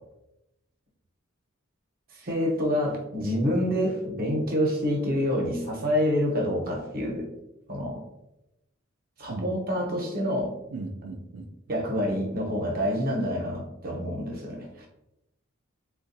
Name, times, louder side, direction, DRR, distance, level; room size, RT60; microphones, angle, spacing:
voice 1, 2.1-7.3 7.7-8.0 9.2-10.5 11.7-14.9, equal, 45° right, 0 dB, 0.8 m, -27 dB
voice 2, 10.7-11.8, right 3 dB, 75° right, 3 dB, 0.4 m, -38 dB
3.7 x 2.2 x 2.6 m, 0.88 s
head